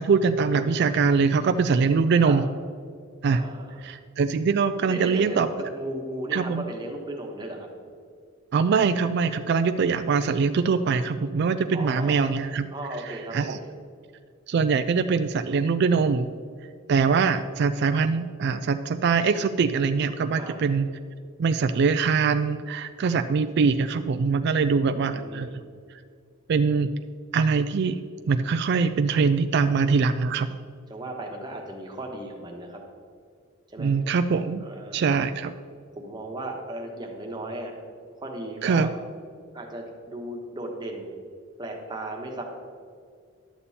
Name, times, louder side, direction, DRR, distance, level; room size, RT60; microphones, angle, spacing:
voice 1, 0.0-2.4 3.2-3.4 3.8-5.7 6.3-6.6 8.5-12.7 13.0-13.6 14.5-16.3 16.9-20.9 21.4-25.5 26.5-26.9 27.3-28.0 28.3-30.5 33.8-34.6 34.9-35.5 38.6-38.9, right 5 dB, 55° right, 9 dB, 0.3 m, -23 dB
voice 2, 3.3-3.9 4.8-7.7 11.7-12.3 12.7-13.7 20.3-20.7 24.6-25.7 30.9-32.8 33.7-33.9 34.6-35.1 35.9-37.7 38.2-38.9 39.5-41.2 41.6-42.4, right 1 dB, 20° right, 0 dB, 1.2 m, -36 dB
11.0 x 7.0 x 4.2 m, 2.2 s
head